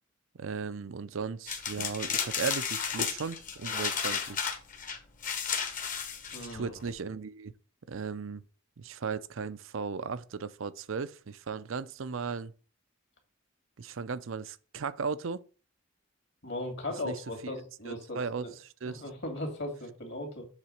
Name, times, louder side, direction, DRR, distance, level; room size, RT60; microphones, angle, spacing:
voice 1, 0.4-4.5 6.4-7.5 7.9-8.4 8.8-12.5 13.8-15.4 17.0-17.5 17.8-19.0, right 5 dB, 70° right, 0.5 m, -36 dB
sound 1, 1.5-6.9, left 6 dB, 40° left, 1.2 m, -33 dB
voice 2, 6.3-6.7 16.4-18.5 18.9-20.5, left 1 dB, 55° left, 2.3 m, -37 dB
7.3 x 3.9 x 6.5 m
head